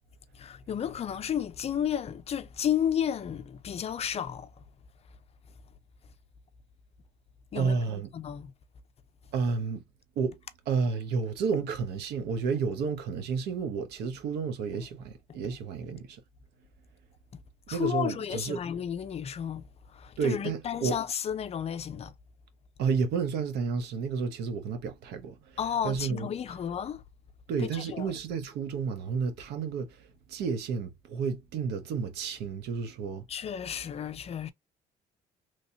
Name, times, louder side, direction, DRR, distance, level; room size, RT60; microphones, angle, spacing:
voice 1, 0.3-4.6 7.5-8.5 17.3-17.4 17.7-22.1 25.6-27.0 27.6-28.1 33.3-34.5, left 9 dB, 35° left, 0.5 m, -32 dB
voice 2, 7.5-8.1 9.3-9.8 10.2-10.4 10.7-16.2 17.7-18.6 20.2-21.0 22.8-25.6 25.8-26.3 27.5-33.3, right 5 dB, 80° right, 0.9 m, -31 dB
3.1 x 2.8 x 2.7 m
cardioid pair, 110°, 17 cm